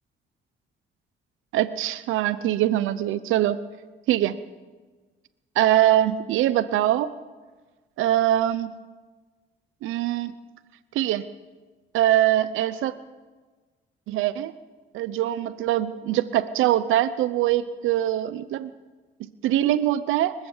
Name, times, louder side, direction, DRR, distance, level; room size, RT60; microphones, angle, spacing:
voice 1, 1.5-3.6 4.1-4.3 5.6-7.1 8.0-8.7 9.8-10.3 10.9-11.2 11.9-13.0 14.1-14.5 14.9-18.7 19.2-20.3, right 13 dB, 90° right, 14 dB, 0.8 m, -23 dB
26.5 x 15.0 x 7.2 m, 1.3 s
cardioid pair, 90°, 20 cm